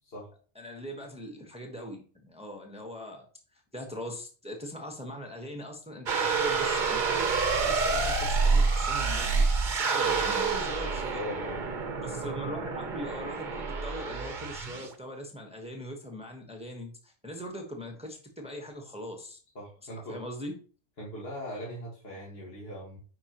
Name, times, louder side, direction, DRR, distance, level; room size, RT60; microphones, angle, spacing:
voice 1, 0.5-3.3 3.5-7.3 7.6-9.4 9.8-11.2 12.0-19.4 19.9-20.5, equal, 5° right, 2 dB, 1.2 m, -41 dB
sound 1, 6.1-14.9, right 4 dB, 50° right, 0.9 m, -28 dB
voice 2, 10.9-11.6 19.6-20.2 21.0-23.0, equal, 60° left, -4 dB, 2.0 m, -40 dB
9.8 x 4.7 x 3.0 m, 0.39 s
omnidirectional pair, 1.1 m